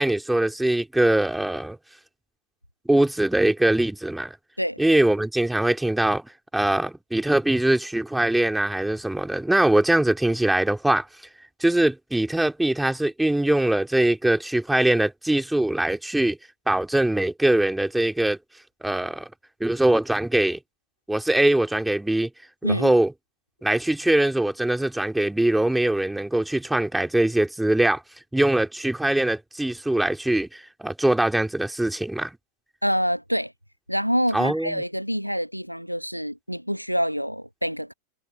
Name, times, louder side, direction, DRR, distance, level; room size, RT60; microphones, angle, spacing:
voice 1, 0.0-1.8 2.9-4.4 4.8-11.1 11.6-16.4 16.7-18.4 18.8-19.3 19.6-20.6 21.1-22.3 22.6-23.1 23.6-28.0 28.3-32.3 34.3-34.8, right 1 dB, 5° right, 3.8 m, -22 dB
voice 2, 32.8-33.5 33.9-37.9, equal, 90° right, 1.3 m, -26 dB
figure-of-eight pair, 90°, 0 cm